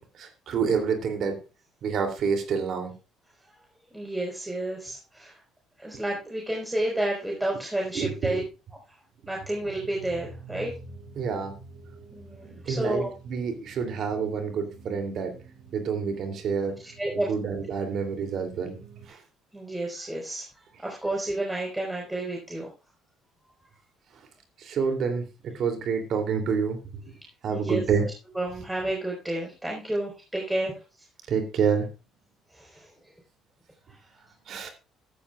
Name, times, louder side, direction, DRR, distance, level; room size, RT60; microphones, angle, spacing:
voice 1, 0.2-1.4 1.8-2.9 7.9-8.4 11.2-11.5 12.7-15.3 15.7-16.7 17.1-18.8 19.1-19.2 24.6-26.8 27.4-28.0 31.3-31.9 34.5-34.7, right 6 dB, 60° right, 5 dB, 3.0 m, -28 dB
voice 2, 3.9-5.4 5.8-8.4 9.3-10.7 12.1-13.1 16.8-17.3 19.5-20.4 20.8-22.7 27.5-27.8 28.3-30.8 32.5-32.9, right 1 dB, 10° right, -2 dB, 4.8 m, -30 dB
sound 1, 9.2-19.1, right 4 dB, 85° right, 4.2 m, -48 dB
14.0 x 13.0 x 2.5 m, 0.31 s
hypercardioid pair, 65°, 0 cm